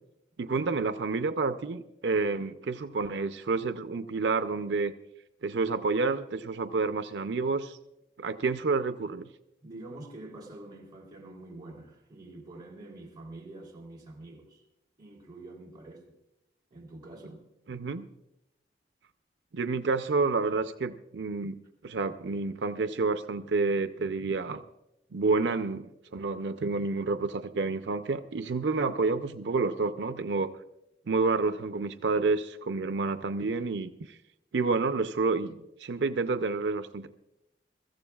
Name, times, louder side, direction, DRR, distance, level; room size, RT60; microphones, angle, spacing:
voice 1, 0.4-4.9 5.4-7.8 8.2-9.3 17.7-18.1 19.5-24.6 25.1-30.5 31.1-34.2 34.5-37.1, right 3 dB, 90° right, 0.5 m, -29 dB
voice 2, 9.6-14.6 15.0-16.0 16.7-17.4, right 2 dB, 25° right, 3.2 m, -46 dB
23.0 x 14.5 x 2.3 m
head